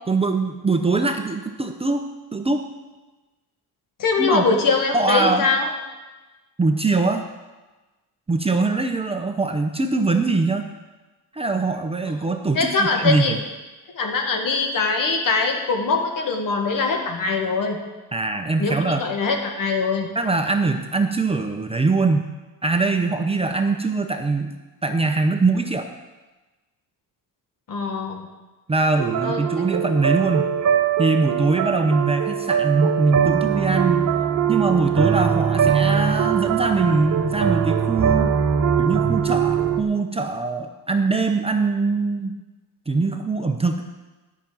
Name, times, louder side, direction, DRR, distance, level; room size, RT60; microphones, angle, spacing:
voice 1, 0.1-2.0 2.3-2.6 4.2-4.4 4.9-5.4 6.6-7.3 8.3-10.7 11.3-13.4 18.1-19.0 20.1-22.3 22.6-24.5 24.8-25.9 28.7-30.5 31.0-34.1 34.5-38.3 38.8-42.3 42.9-43.8, right 3 dB, 15° right, 5 dB, 0.7 m, -22 dB
voice 2, 4.0-5.7 12.6-13.4 14.0-17.8 18.6-20.1 27.7-28.2 29.2-29.4, left 4 dB, 60° left, 3 dB, 1.8 m, -22 dB
sound 1, 29.0-39.8, right 8 dB, 50° right, 1.2 m, -21 dB
11.0 x 6.0 x 8.7 m, 1.2 s
cardioid pair, 135°, 38 cm